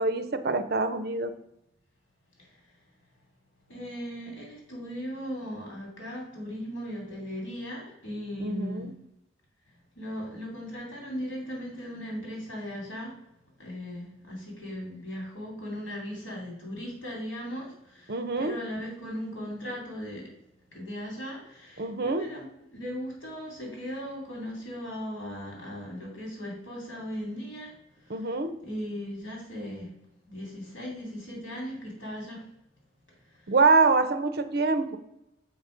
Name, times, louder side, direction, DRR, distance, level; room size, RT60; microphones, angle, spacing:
voice 1, 0.0-1.3 8.4-8.9 18.1-18.6 21.8-22.3 28.1-28.6 33.5-35.0, right 3 dB, 55° right, 10 dB, 0.6 m, -25 dB
voice 2, 2.4-2.7 3.7-8.9 9.9-13.2 13.6-20.3 20.7-28.3 28.6-29.9 30.3-32.5 33.1-33.5, equal, 80° left, -1 dB, 2.7 m, -38 dB
7.3 x 4.0 x 5.0 m, 0.86 s
head